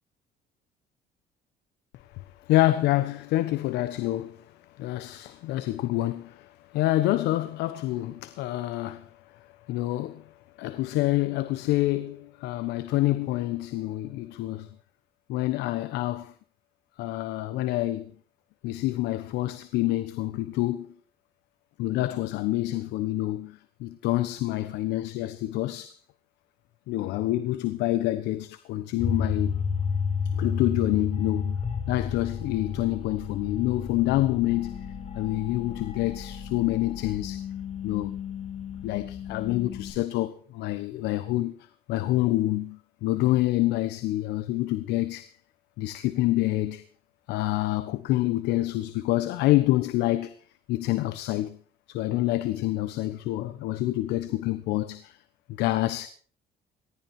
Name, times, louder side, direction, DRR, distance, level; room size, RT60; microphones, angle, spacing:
voice 1, 2.1-4.4 4.8-9.1 9.7-10.3 10.6-14.7 15.3-16.3 17.0-18.1 18.6-20.9 21.8-26.0 26.9-29.6 30.3-31.6 31.9-34.8 35.1-37.4 37.8-38.2 38.8-41.5 41.9-45.3 45.8-46.9 47.3-50.3 50.7-51.6 51.9-55.2 55.6-56.1, left 16 dB, 90° left, 1.2 m, -27 dB
sound 1, 29.0-39.9, left 6 dB, 40° left, 5.0 m, -32 dB
19.5 x 14.5 x 4.5 m
cardioid pair, 110°, 17 cm